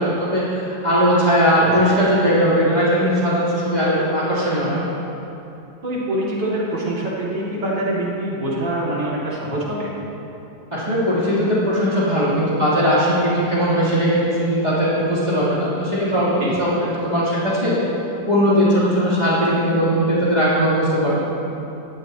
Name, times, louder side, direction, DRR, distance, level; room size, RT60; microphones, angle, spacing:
voice 1, 0.0-4.9 10.7-16.3 16.6-17.7 18.2-21.3, equal, 20° right, -11 dB, 3.4 m, -19 dB
voice 2, 5.8-9.9 16.4-16.5, right 1 dB, 75° right, -6 dB, 3.2 m, -24 dB
18.5 x 13.0 x 2.9 m, 2.9 s
omnidirectional pair, 1.9 m